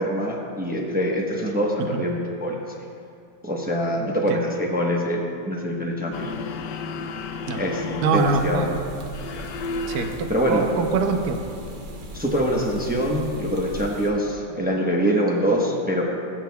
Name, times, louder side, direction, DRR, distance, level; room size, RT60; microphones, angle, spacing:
voice 1, 0.0-2.6 3.4-6.3 7.6-8.6 9.3-9.4 10.3-10.6 12.1-16.0, equal, 15° right, -2 dB, 0.3 m, -24 dB
sound 1, 6.1-14.4, left 3 dB, 70° left, 1.1 m, -35 dB
voice 2, 8.0-8.8 9.9-11.4, right 4 dB, 65° right, 5 dB, 1.2 m, -24 dB
sound 2, 8.1-14.1, right 1 dB, 85° right, 0.4 m, -39 dB
17.0 x 8.7 x 2.3 m, 2.4 s
omnidirectional pair, 2.1 m